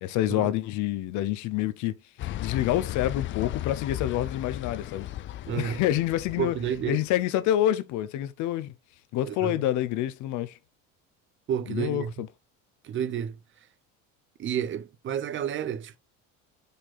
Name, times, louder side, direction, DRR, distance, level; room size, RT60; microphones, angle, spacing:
voice 1, 0.0-1.9 2.4-5.1 5.5-6.5 6.9-8.7 9.1-10.5 11.7-12.3, left 13 dB, 65° left, 0.9 m, -27 dB
sound 1, 2.2-7.0, left 14 dB, 40° left, 0.4 m, -35 dB
voice 2, 5.5-5.8 6.4-7.0 9.3-9.7 11.5-12.1 12.8-13.4 14.4-16.0, right 9 dB, 40° right, 0.7 m, -30 dB
5.2 x 4.3 x 5.7 m
cardioid pair, 135°, 32 cm